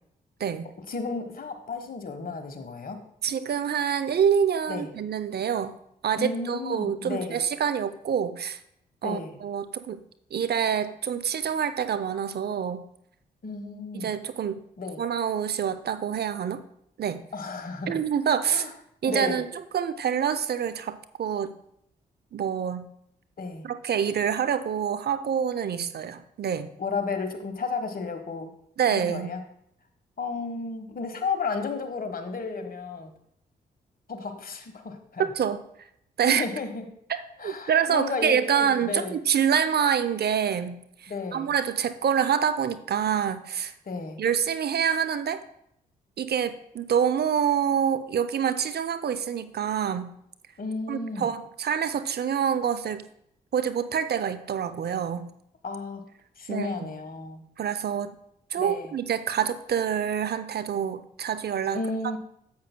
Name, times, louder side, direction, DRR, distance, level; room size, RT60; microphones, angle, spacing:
voice 1, 0.8-3.0 4.7-4.9 6.2-7.4 9.0-9.4 13.4-14.1 14.8-15.0 17.3-18.0 18.5-18.7 19.0-19.4 23.4-23.7 26.8-28.5 28.9-29.4 30.2-33.1 34.1-35.3 36.2-36.9 37.4-39.2 41.1-41.5 43.8-44.2 50.6-51.3 55.6-56.1 56.4-57.5 58.6-58.9 61.7-62.2, left 4 dB, 45° left, 7 dB, 1.3 m, -33 dB
voice 2, 3.2-5.7 6.0-8.6 9.0-10.0 10.3-12.8 13.9-14.6 15.0-16.6 17.0-17.2 17.9-18.6 19.0-19.5 19.7-21.6 22.3-22.9 23.6-26.7 28.8-29.3 35.2-35.6 36.2-36.4 37.4-43.7 44.2-45.4 46.2-50.1 50.9-53.0 53.5-55.3 56.5-56.9 57.6-58.1 58.5-61.8, right 8 dB, 55° right, 11 dB, 0.6 m, -26 dB
10.0 x 8.0 x 2.2 m, 0.73 s
hypercardioid pair, 45°, 20 cm